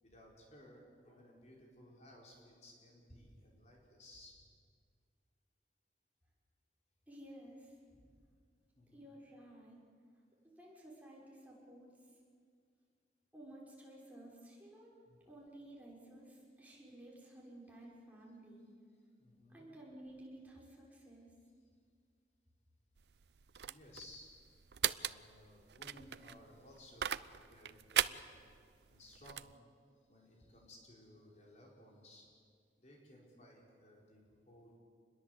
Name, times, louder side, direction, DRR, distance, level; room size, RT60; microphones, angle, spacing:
voice 1, 0.0-4.4 7.9-8.1 8.8-9.0 15.0-15.2 19.2-19.7 23.6-24.3 25.0-28.4 28.9-29.5 30.1-32.3 32.8-34.8, left 1 dB, 40° left, -2 dB, 4.9 m, -59 dB
voice 2, 7.1-7.8 8.9-9.8 10.4-11.9 13.3-15.0 15.2-18.7 19.5-21.3, right 1 dB, 10° right, -4 dB, 6.1 m, -54 dB
sound 1, 23.0-29.5, right 10 dB, 70° right, 0.6 m, -40 dB
28.0 x 21.5 x 8.1 m, 2.1 s
head